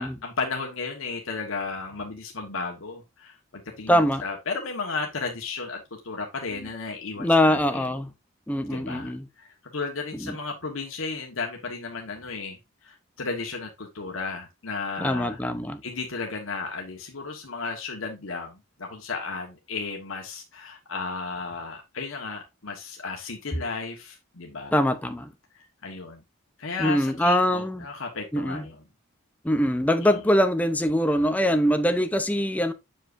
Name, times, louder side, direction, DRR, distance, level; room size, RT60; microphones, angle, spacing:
voice 1, 0.0-7.9 8.7-15.4 15.8-24.7 25.5-26.2 26.6-28.8 30.0-30.2, left 4 dB, 80° left, 1.3 m, -34 dB
voice 2, 3.9-4.2 6.6-6.7 7.2-8.1 8.5-9.3 10.1-10.4 15.0-15.8 24.7-25.3 26.8-27.9 28.3-28.7 29.4-32.7, equal, 5° left, 0.6 m, -23 dB
7.6 x 6.5 x 2.6 m
head